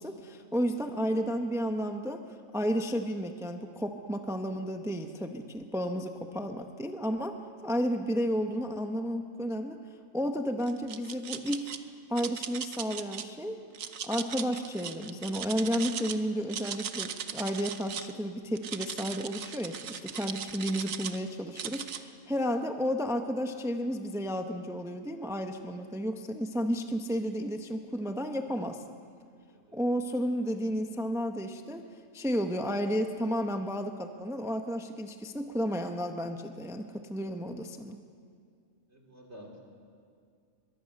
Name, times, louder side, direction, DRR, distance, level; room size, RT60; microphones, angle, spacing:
voice 1, 0.0-7.4 7.6-9.8 10.1-11.7 12.1-13.6 14.0-28.8 29.7-31.9 32.1-38.0, equal, 5° right, 5 dB, 0.8 m, -32 dB
sound 1, 10.6-11.8 12.2-13.2 13.7-16.2 16.4-18.1 18.6-21.2 21.6-22.0, right 8 dB, 75° right, 1.3 m, -38 dB
voice 2, 38.9-39.6, equal, 55° right, 1 dB, 3.8 m, -50 dB
22.5 x 22.5 x 6.6 m, 2.2 s
omnidirectional pair, 1.4 m